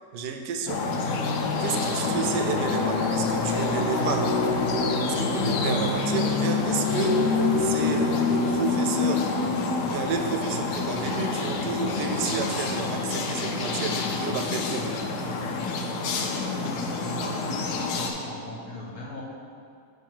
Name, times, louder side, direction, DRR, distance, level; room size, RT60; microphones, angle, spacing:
voice 1, 0.1-0.9 1.1-4.3 5.0-9.3 9.8-15.0, right 6 dB, 85° right, 5 dB, 1.2 m, -31 dB
sound 1, 0.7-18.1, left 4 dB, 85° left, 1.2 m, -26 dB
voice 2, 16.3-19.2, left 2 dB, 65° left, -3 dB, 1.5 m, -39 dB
7.3 x 3.3 x 4.5 m, 2.4 s
omnidirectional pair, 1.7 m